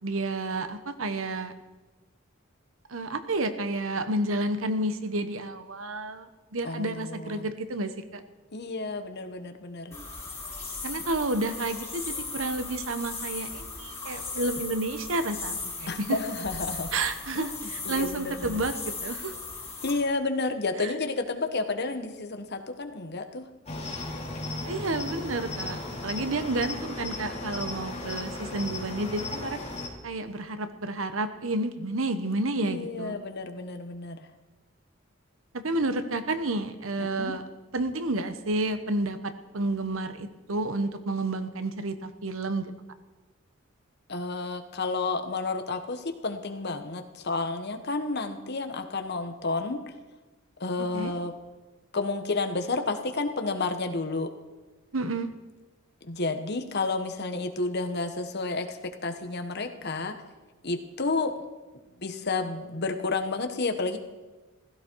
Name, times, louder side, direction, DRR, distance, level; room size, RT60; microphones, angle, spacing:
voice 1, 0.0-1.5 2.9-8.2 10.8-16.2 16.9-19.3 20.8-20.9 24.7-29.6 30.0-33.1 35.5-37.4 37.7-42.7 50.9-51.1 54.9-55.3, right 2 dB, 80° right, 10 dB, 1.2 m, -30 dB
voice 2, 6.6-7.5 8.5-10.0 15.9-16.9 17.3-18.6 19.8-23.4 32.6-34.3 37.0-37.3 44.1-49.8 50.6-51.3 51.9-54.3 56.0-60.1 60.6-61.3 62.0-64.0, left 3 dB, 55° left, 7 dB, 1.4 m, -31 dB
sound 1, 9.9-19.9, left 4 dB, 15° left, 5.4 m, -37 dB
Cricket, 23.7-29.9, left 2 dB, 35° left, 3.1 m, -36 dB
16.0 x 15.5 x 4.7 m, 1.2 s
head